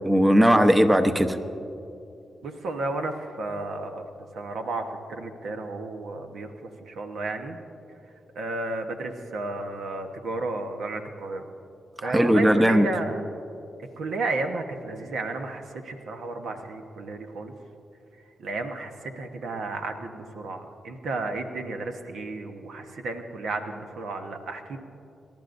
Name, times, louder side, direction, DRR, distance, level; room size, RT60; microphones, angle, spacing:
voice 1, 0.0-1.4 12.0-12.9, equal, 15° right, 8 dB, 0.9 m, -18 dB
voice 2, 2.4-4.0 4.3-7.6 8.3-11.5 12.0-13.2 14.0-17.5 18.4-24.8, right 2 dB, 80° right, 5 dB, 1.1 m, -33 dB
25.5 x 12.0 x 2.6 m, 2.7 s
cardioid pair, 55°, 0 cm